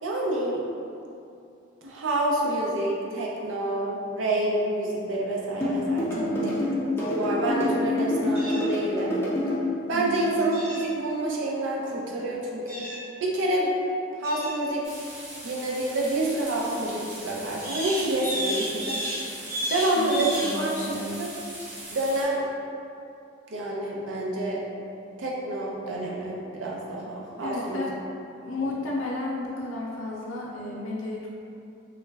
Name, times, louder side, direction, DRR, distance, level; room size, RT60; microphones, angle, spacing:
voice 1, 0.0-0.6 1.8-9.2 9.9-12.8 13.2-13.7 14.2-14.8 15.4-19.1 19.7-21.3 21.9-22.4 23.5-24.6 25.2-27.9, right 1 dB, 75° right, -3 dB, 0.5 m, -28 dB
sound 1, 5.6-9.6, left 1 dB, 10° left, 0.5 m, -26 dB
voice 2, 6.1-6.6 9.9-10.2 20.0-20.1 20.4-21.2 27.4-27.9 28.4-31.3, left 2 dB, 85° left, -4 dB, 0.4 m, -33 dB
sound 2, 8.3-8.6 10.5-10.8 12.7-13.0 14.2-14.6 17.6-20.6, equal, 15° right, 1.2 m, -32 dB
sound 3, 14.8-22.2, right 1 dB, 60° right, 0.9 m, -41 dB
3.1 x 2.3 x 3.3 m, 2.7 s
head